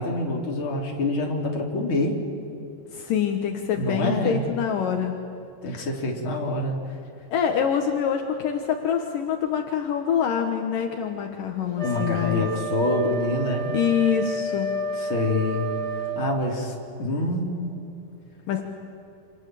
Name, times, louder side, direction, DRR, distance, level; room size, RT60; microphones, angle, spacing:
voice 1, 0.0-2.2 3.8-4.4 5.6-6.8 11.8-13.8 15.0-15.7 16.2-16.7 17.0-17.8, left 2 dB, 35° left, 0 dB, 3.9 m, -26 dB
voice 2, 2.9-5.1 5.7-5.9 7.3-12.5 13.7-14.8 18.5-18.6, left 8 dB, 70° left, 4 dB, 2.9 m, -25 dB
Wind instrument woodwind instrument, 11.8-16.2, right 3 dB, 20° right, 3.2 m, -30 dB
28.5 x 27.0 x 7.7 m, 2.8 s
omnidirectional pair, 4.1 m